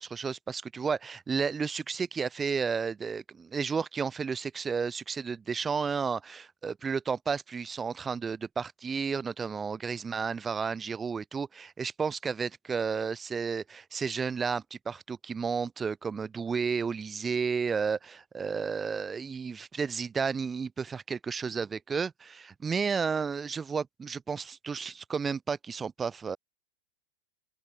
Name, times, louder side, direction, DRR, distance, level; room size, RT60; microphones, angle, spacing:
voice 1, 0.0-26.4, right 5 dB, 15° right, 0.5 m, -32 dB
open air
figure-of-eight pair, 90°, 0 cm